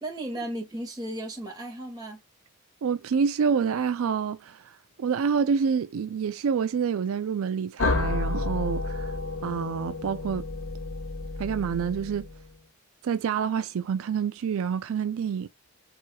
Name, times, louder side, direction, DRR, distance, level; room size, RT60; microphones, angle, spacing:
voice 1, 0.0-2.2, right 1 dB, 20° right, 1.9 m, -35 dB
voice 2, 2.8-9.1 9.4-10.4 11.4-12.3 13.0-15.5, right 6 dB, 70° right, 0.4 m, -27 dB
sound 1, 7.8-12.5, left 3 dB, 70° left, 1.1 m, -31 dB
7.7 x 3.0 x 2.2 m
head